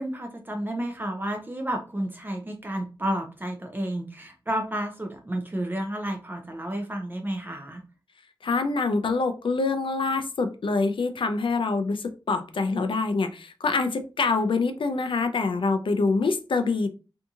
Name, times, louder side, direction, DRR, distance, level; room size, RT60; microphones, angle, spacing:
voice 1, 0.0-7.8, right 1 dB, 25° right, 3 dB, 0.4 m, -31 dB
voice 2, 8.4-16.9, left 3 dB, 80° left, 7 dB, 0.4 m, -25 dB
2.7 x 2.6 x 2.3 m, 0.33 s
wide cardioid pair, 85°, 8 cm